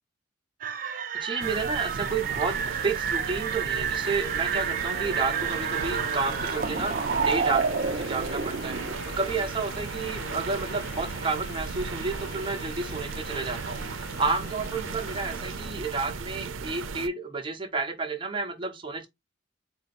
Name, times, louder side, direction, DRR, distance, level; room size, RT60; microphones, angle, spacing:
sound 1, 0.6-8.9, right 6 dB, 45° right, 0.5 m, -30 dB
voice 1, 1.1-8.8 9.2-19.1, right 4 dB, 25° right, 0.9 m, -31 dB
sound 2, 1.4-17.1, right 5 dB, 85° right, 0.6 m, -36 dB
sound 3, 3.6-16.6, left 4 dB, 55° left, 0.6 m, -43 dB
4.3 x 3.0 x 4.1 m
head